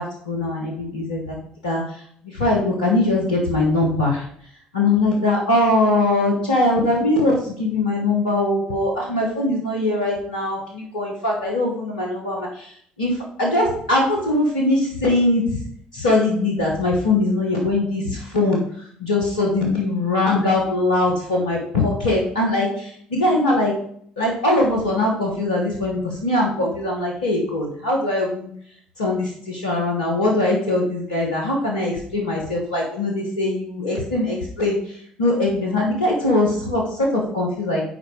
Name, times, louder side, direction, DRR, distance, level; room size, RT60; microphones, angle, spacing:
voice 1, 0.0-1.3 1.6-1.8 2.2-4.2 4.7-12.7 13.0-15.4 15.9-18.6 19.0-23.7 24.2-28.5 29.0-34.8 35.2-37.8, left 2 dB, 90° left, -1 dB, 1.0 m, -21 dB
6.4 x 4.5 x 4.8 m, 0.63 s
hypercardioid pair, 50°, 4 cm